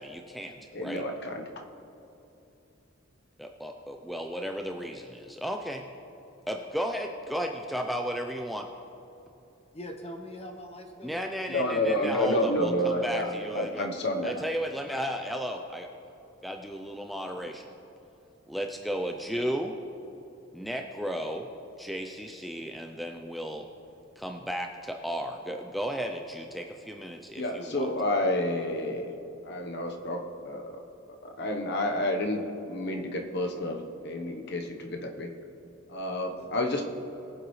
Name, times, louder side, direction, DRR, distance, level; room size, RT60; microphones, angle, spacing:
voice 1, 0.0-1.0 3.4-5.9 6.5-8.7 11.0-13.9 14.2-15.9 16.4-17.7 18.5-19.8 20.5-21.5 21.8-23.7 24.2-27.9, equal, ahead, 3 dB, 0.4 m, -34 dB
voice 2, 0.7-1.4 11.5-14.4 27.3-29.1 29.4-30.7 31.2-35.3 35.9-36.8, left 1 dB, 55° left, 4 dB, 1.0 m, -30 dB
voice 3, 9.7-11.6 36.4-36.5, equal, 30° left, 3 dB, 1.2 m, -42 dB
22.0 x 7.7 x 3.2 m, 3.0 s
head